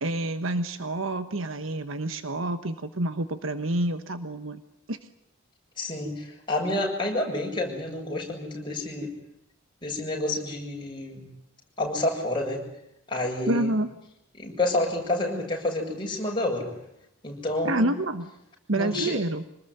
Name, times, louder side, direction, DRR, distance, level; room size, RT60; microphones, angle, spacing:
voice 1, 0.0-4.6 4.9-5.0 13.5-13.9 17.6-18.3 18.7-19.4, right 1 dB, 85° right, 10 dB, 1.3 m, -28 dB
voice 2, 5.8-9.1 9.8-11.2 11.8-12.6 13.1-13.7 14.4-16.7 17.2-17.9 18.8-19.2, left 1 dB, 25° left, 0 dB, 7.4 m, -29 dB
26.5 x 20.0 x 9.4 m, 0.80 s
head